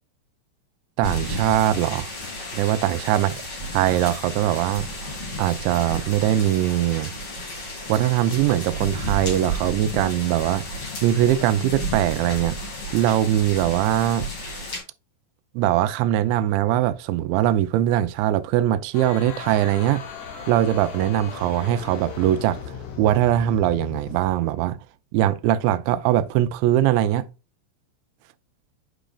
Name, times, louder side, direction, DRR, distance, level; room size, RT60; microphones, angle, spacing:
sound 1, 1.0-14.8, right 1 dB, 40° left, 2.1 m, -32 dB
voice 1, 1.0-2.1 2.5-3.4 3.7-4.9 5.4-7.1 7.9-10.6 11.0-12.6 12.9-14.3 15.5-20.0 20.5-24.8 25.1-27.3, right 12 dB, 85° right, 2.7 m, -21 dB
sound 2, 18.9-24.3, left 6 dB, 85° left, 4.1 m, -37 dB
9.2 x 5.0 x 2.3 m
omnidirectional pair, 5.5 m